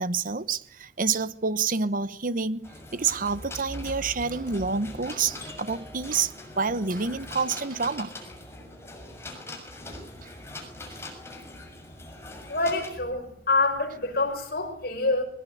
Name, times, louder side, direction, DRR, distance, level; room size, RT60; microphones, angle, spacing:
voice 1, 0.0-8.1 10.2-10.3 10.9-11.0, right 5 dB, 50° right, 1.1 m, -28 dB
sound 1, 2.6-12.9, left 1 dB, 15° left, 6.4 m, -41 dB
voice 2, 12.5-15.2, left 3 dB, 60° left, 5.8 m, -26 dB
22.0 x 21.0 x 9.4 m
head